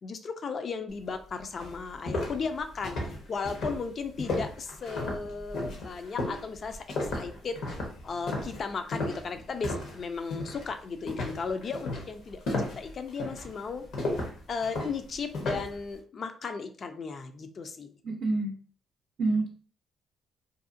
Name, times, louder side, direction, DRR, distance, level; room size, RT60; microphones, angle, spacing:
voice 1, 0.0-6.8 7.1-7.6 8.0-13.8 14.5-17.9, left 5 dB, 50° left, 8 dB, 0.4 m, -35 dB
sound 1, 1.1-1.2 1.6-10.0 10.3-10.7 11.1-15.8, left 2 dB, 75° left, 0.9 m, -34 dB
voice 2, 18.0-18.5 19.2-19.5, right 2 dB, 65° right, -1 dB, 0.5 m, -27 dB
2.6 x 2.3 x 2.5 m, 0.42 s
supercardioid pair, 65°, 0 cm